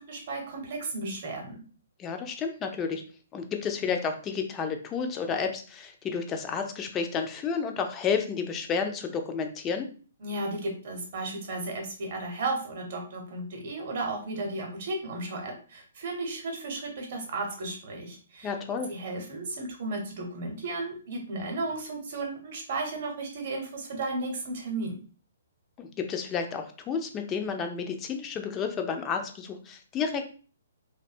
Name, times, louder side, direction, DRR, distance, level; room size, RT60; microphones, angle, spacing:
voice 1, 0.0-1.6 10.2-18.5 18.9-25.0, right 2 dB, 50° right, 2 dB, 0.8 m, -34 dB
voice 2, 2.0-3.0 3.3-9.9 18.4-18.9 25.8-30.2, left 6 dB, 20° left, 5 dB, 0.4 m, -31 dB
2.6 x 2.2 x 2.4 m, 0.39 s
figure-of-eight pair, 125°, 0 cm